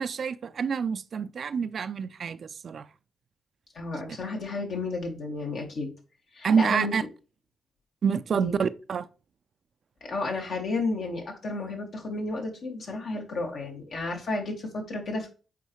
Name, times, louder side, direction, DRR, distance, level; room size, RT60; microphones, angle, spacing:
voice 1, 0.0-2.9 3.9-4.0 6.4-7.0 8.0-9.1, right 6 dB, 60° right, 0.4 m, -27 dB
voice 2, 3.7-5.9 6.3-6.9 8.3-8.6 10.0-15.3, left 3 dB, 65° left, 2.0 m, -32 dB
8.2 x 4.0 x 3.1 m
supercardioid pair, 50°, 0 cm